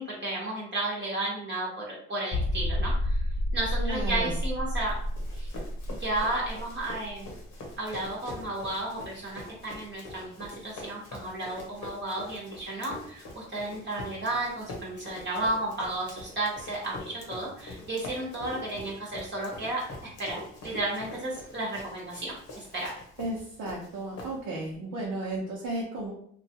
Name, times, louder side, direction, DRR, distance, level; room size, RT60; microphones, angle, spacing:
voice 1, 0.0-3.2 3.5-5.0 5.3-5.5 5.9-7.3 7.8-23.0, right 2 dB, 35° right, -4 dB, 0.9 m, -33 dB
sound 1, 2.3-7.8 8.1-8.2 8.7-8.8, left 1 dB, 35° left, 0.5 m, -30 dB
voice 2, 3.8-4.3 23.2-26.1, right 1 dB, 80° right, -4 dB, 0.8 m, -34 dB
Run, 4.9-24.7, left 2 dB, 65° left, 1.0 m, -44 dB
2.9 x 2.3 x 2.8 m, 0.64 s
cardioid pair, 90°, 30 cm